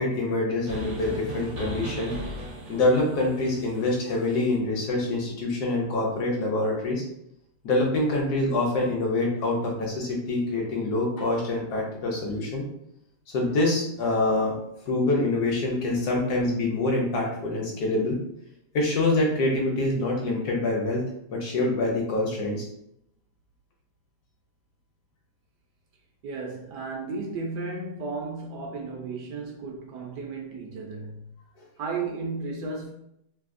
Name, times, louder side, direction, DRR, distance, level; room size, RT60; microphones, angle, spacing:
voice 1, 0.0-2.2 2.7-7.0 7.6-12.7 13.3-14.5 14.9-18.2 18.7-21.0 21.3-22.7, left 2 dB, 65° left, 1.1 m, -25 dB
sound 1, 0.7-4.6, right 1 dB, 55° right, 0.8 m, -38 dB
voice 2, 26.2-31.3 31.8-32.9, right 3 dB, 75° right, 1.2 m, -34 dB
3.3 x 2.7 x 2.5 m
omnidirectional pair, 2.0 m